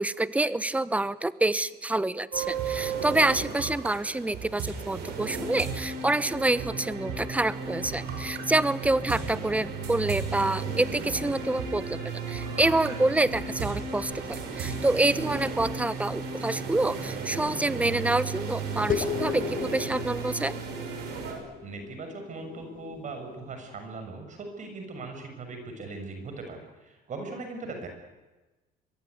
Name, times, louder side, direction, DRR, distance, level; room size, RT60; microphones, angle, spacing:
voice 1, 0.0-12.0 12.3-20.6, right 2 dB, 10° right, 16 dB, 1.0 m, -27 dB
sound 1, 2.3-21.3, right 5 dB, 80° right, 6.4 m, -34 dB
sound 2, 18.9-23.7, left 8 dB, 55° left, 2.1 m, -36 dB
voice 2, 21.6-27.9, right 3 dB, 45° right, 5 dB, 6.7 m, -39 dB
23.5 x 22.0 x 9.7 m, 1.1 s
cardioid pair, 110°, 17 cm